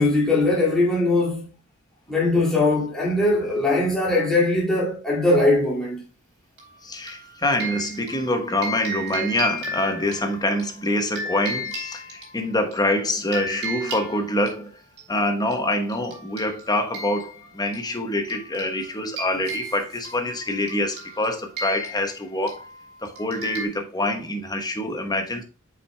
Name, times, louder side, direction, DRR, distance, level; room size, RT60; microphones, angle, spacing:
voice 1, 0.0-1.5 2.1-6.0, left 2 dB, 5° left, 2.3 m, -20 dB
sound 1, 6.6-12.8 13.3-15.1 15.5-15.6 15.9-23.7, right 1 dB, 50° right, 3.1 m, -35 dB
voice 2, 6.8-14.8 15.1-22.6 23.0-25.4, left 1 dB, 20° left, 1.0 m, -25 dB
7.7 x 5.8 x 2.2 m
head